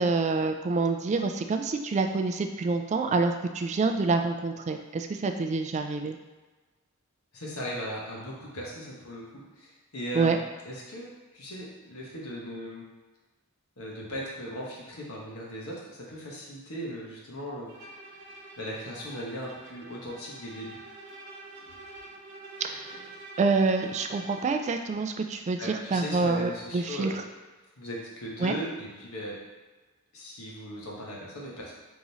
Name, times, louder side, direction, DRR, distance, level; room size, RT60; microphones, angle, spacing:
voice 1, 0.0-6.2 10.1-10.4 22.6-23.0 23.4-27.1 28.4-28.6, right 4 dB, 35° right, 6 dB, 0.3 m, -27 dB
voice 2, 7.3-12.8 13.8-17.7 18.6-20.8 25.6-27.1 27.8-29.4 30.1-31.7, equal, 90° left, -3 dB, 1.1 m, -38 dB
Bowed string instrument, 17.7-24.6, right 2 dB, 60° right, 0.7 m, -47 dB
3.6 x 3.1 x 4.0 m, 1.3 s
head